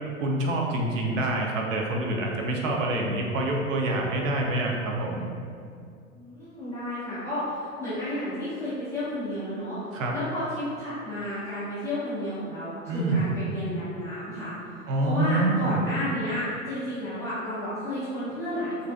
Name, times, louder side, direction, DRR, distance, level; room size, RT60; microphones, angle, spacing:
voice 1, 0.2-5.2 9.9-10.1 12.9-13.3 14.9-15.8, right 2 dB, 65° right, 0 dB, 0.5 m, -26 dB
voice 2, 6.1-14.5 15.0-18.9, left 1 dB, 5° left, -15 dB, 0.3 m, -32 dB
2.5 x 2.3 x 2.3 m, 2.3 s
figure-of-eight pair, 95°, 42 cm